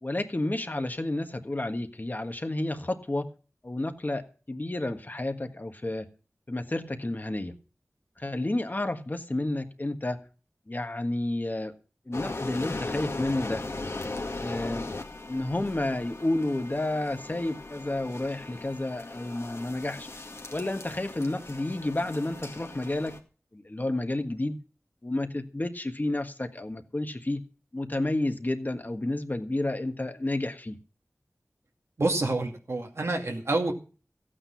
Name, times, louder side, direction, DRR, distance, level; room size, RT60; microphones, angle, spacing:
voice 1, 0.0-3.3 3.6-6.1 6.5-7.5 8.2-10.2 10.7-11.7 12.1-13.6 14.4-14.9 15.3-20.1 20.5-23.1 23.5-24.6 25.0-27.4 27.7-30.8, left 2 dB, 40° left, 6 dB, 1.5 m, -31 dB
sound 1, 12.1-23.2, left 2 dB, 65° left, 2.0 m, -38 dB
voice 2, 32.0-33.7, right 2 dB, 65° right, 3 dB, 2.4 m, -27 dB
15.0 x 9.0 x 5.8 m, 0.37 s
wide cardioid pair, 65°, 5 cm